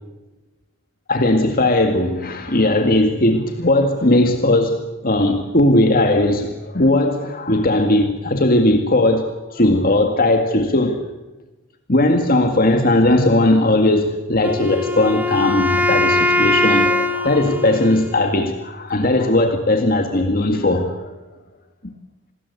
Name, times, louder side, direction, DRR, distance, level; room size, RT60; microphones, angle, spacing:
voice 1, 1.1-11.0 11.9-21.1, left 1 dB, 40° left, 2.0 m, -18 dB
Wind instrument woodwind instrument, 14.4-18.5, left 1 dB, 5° right, 1.2 m, -21 dB
29.0 x 20.0 x 8.3 m
head